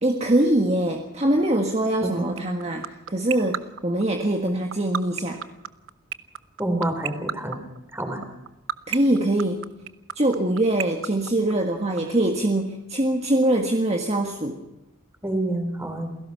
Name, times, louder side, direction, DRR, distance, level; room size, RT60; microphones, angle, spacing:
voice 1, 0.0-5.4 8.9-9.7 10.1-14.6, right 1 dB, 30° right, 2 dB, 1.6 m, -23 dB
voice 2, 2.0-2.4 6.6-7.6 7.9-8.2 15.2-16.1, right 1 dB, 10° right, 6 dB, 4.0 m, -27 dB
sound 1, 2.4-12.0, right 8 dB, 75° right, 0.9 m, -28 dB
28.0 x 17.5 x 5.7 m, 0.98 s
head